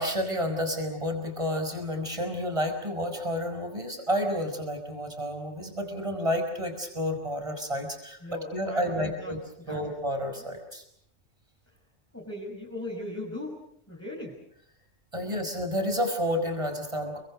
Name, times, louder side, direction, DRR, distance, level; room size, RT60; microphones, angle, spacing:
voice 1, 0.0-9.4 9.7-10.8 15.1-17.2, equal, 25° right, 5 dB, 5.5 m, -30 dB
voice 2, 8.2-9.9 10.3-10.5 11.7-11.8 12.1-14.4 15.2-15.3, left 1 dB, 10° left, -5 dB, 6.2 m, -39 dB
30.0 x 24.0 x 6.4 m, 0.70 s
omnidirectional pair, 1.2 m